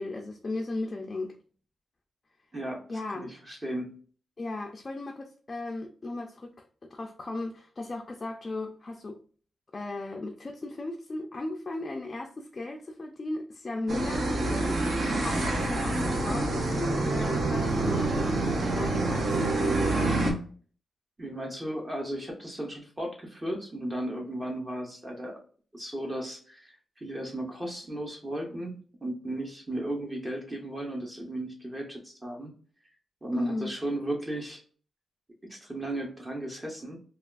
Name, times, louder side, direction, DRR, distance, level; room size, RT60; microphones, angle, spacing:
voice 1, 0.0-1.4 2.9-3.3 4.4-9.2 9.7-18.4 18.7-19.6 33.3-33.8, left 2 dB, 30° left, 0.4 m, -36 dB
voice 2, 2.5-2.8 3.1-3.9 21.2-25.4 25.7-32.5 33.2-34.6 35.5-37.0, right 1 dB, 20° right, 0.7 m, -35 dB
sound 1, 13.9-20.3, right 2 dB, 60° right, 0.8 m, -27 dB
3.3 x 2.3 x 2.3 m
wide cardioid pair, 120°, 0 cm